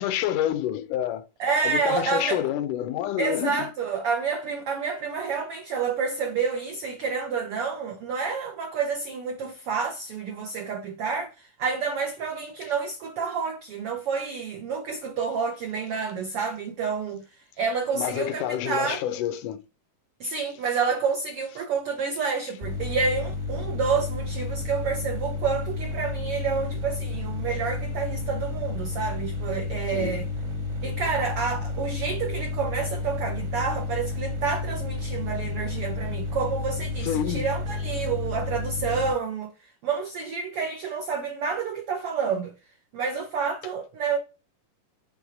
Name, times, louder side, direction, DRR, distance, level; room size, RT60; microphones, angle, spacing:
voice 1, 0.0-1.3 1.6-3.7 12.6-12.7 17.9-19.6 20.2-20.3 29.9-30.2 37.0-37.5, left 11 dB, 80° left, 2.1 m, -28 dB
voice 2, 1.4-2.4 3.2-17.2 17.6-19.0 20.2-30.3 30.8-42.5 42.9-44.2, right 5 dB, 75° right, 1.3 m, -29 dB
sound 1, 22.6-39.1, left 3 dB, 35° right, 1.1 m, -31 dB
6.3 x 3.3 x 4.9 m
omnidirectional pair, 3.7 m